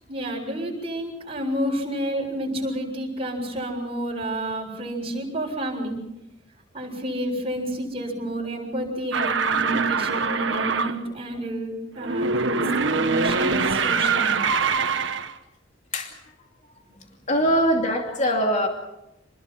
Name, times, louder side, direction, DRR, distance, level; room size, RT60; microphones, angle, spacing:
voice 1, 0.1-6.0 6.7-12.6 12.9-14.4, right 1 dB, 30° right, 0 dB, 7.1 m, -30 dB
sound 1, 9.1-11.0 12.0-15.3, right 4 dB, 80° right, 1.5 m, -23 dB
voice 2, 17.3-18.7, equal, 40° left, 2 dB, 2.7 m, -22 dB
29.0 x 21.0 x 5.9 m, 0.90 s
head